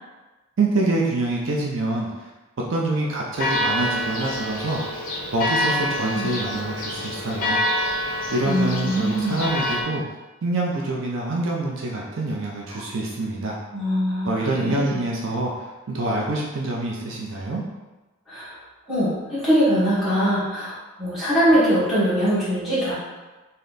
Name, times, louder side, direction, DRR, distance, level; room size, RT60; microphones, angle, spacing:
voice 1, 0.6-2.3 2.7-4.8 5.3-7.6 8.3-10.0 10.4-13.6 14.2-17.6, right 2 dB, 60° right, -2 dB, 0.5 m, -26 dB
Church bell, 3.3-9.8, left 1 dB, 40° left, 0.7 m, -26 dB
voice 2, 8.4-9.5 12.7-12.8 13.7-15.0 18.3-18.5 18.9-22.9, equal, ahead, -12 dB, 1.4 m, -22 dB
3.2 x 2.8 x 3.9 m, 1.2 s
head